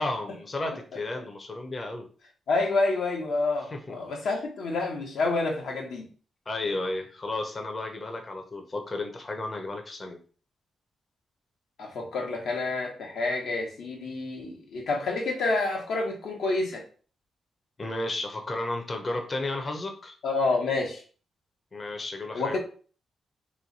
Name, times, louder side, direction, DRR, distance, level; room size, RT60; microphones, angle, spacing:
voice 1, 0.0-2.1 3.7-4.0 4.2-4.3 6.5-10.2 17.8-20.2 21.7-22.6, left 2 dB, 30° left, 3 dB, 0.6 m, -33 dB
voice 2, 2.5-6.1 11.8-16.8 20.2-21.0 22.3-22.6, left 3 dB, 85° left, 1 dB, 1.1 m, -28 dB
3.1 x 3.0 x 3.9 m, 0.40 s
wide cardioid pair, 130°, 0 cm